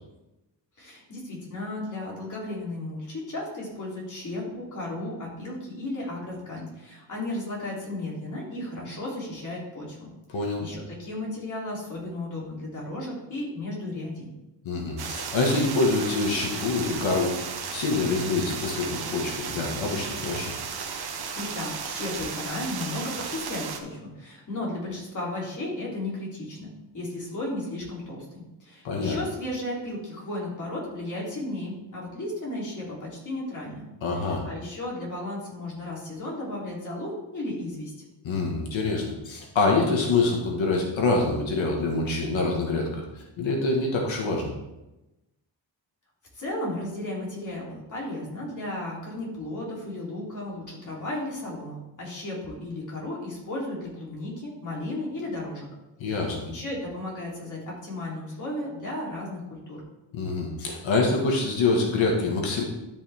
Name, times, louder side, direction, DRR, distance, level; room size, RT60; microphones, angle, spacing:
voice 1, 0.8-14.3 21.3-33.8 34.1-37.9 46.3-55.7 56.1-59.8, left 1 dB, 40° left, -4 dB, 3.4 m, -34 dB
voice 2, 10.3-10.6 14.6-20.6 28.8-29.2 34.0-34.4 38.2-44.5 56.0-56.4 60.1-62.6, left 3 dB, 85° left, 0 dB, 1.8 m, -26 dB
Forest rain, 15.0-23.8, right 6 dB, 55° right, 1.1 m, -34 dB
12.5 x 5.5 x 3.6 m, 0.98 s
wide cardioid pair, 140°, 45 cm